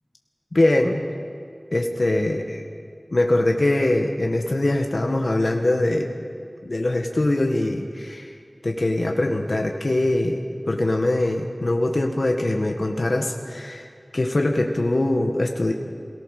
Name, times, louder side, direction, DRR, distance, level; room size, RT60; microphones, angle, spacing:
voice 1, 0.5-1.0 1.7-2.6 3.1-6.1 6.6-8.3 8.6-13.8 14.1-15.7, left 1 dB, 65° left, 2 dB, 1.8 m, -22 dB
27.5 x 18.5 x 6.7 m, 2.3 s
wide cardioid pair, 50°, 0 cm